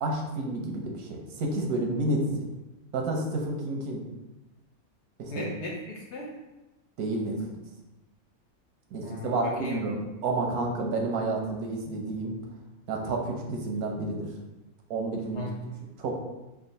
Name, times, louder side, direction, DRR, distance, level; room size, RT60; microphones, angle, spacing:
voice 1, 0.0-2.5 2.9-4.0 5.2-5.5 7.0-7.4 8.9-10.0 10.2-12.3 12.9-14.3 14.9-15.4 16.0-16.2, right 2 dB, 90° right, 1 dB, 1.2 m, -30 dB
voice 2, 5.3-6.3 9.0-9.8 15.3-15.8, left 1 dB, 65° left, -1 dB, 0.8 m, -37 dB
3.6 x 2.1 x 4.0 m, 1.0 s
omnidirectional pair, 1.5 m